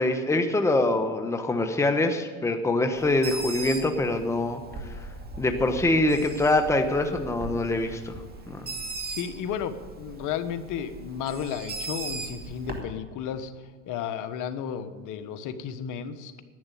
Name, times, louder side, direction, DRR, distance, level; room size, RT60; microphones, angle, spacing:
voice 1, 0.0-4.6 5.4-8.1 8.5-8.6, left 2 dB, 5° left, 6 dB, 1.1 m, -24 dB
Bird, 3.0-12.8, right 3 dB, 25° right, 2.3 m, -39 dB
voice 2, 9.1-13.5 13.9-16.4, left 8 dB, 55° left, 10 dB, 1.4 m, -33 dB
11.0 x 9.5 x 9.3 m, 1.5 s
supercardioid pair, 105°, 38 cm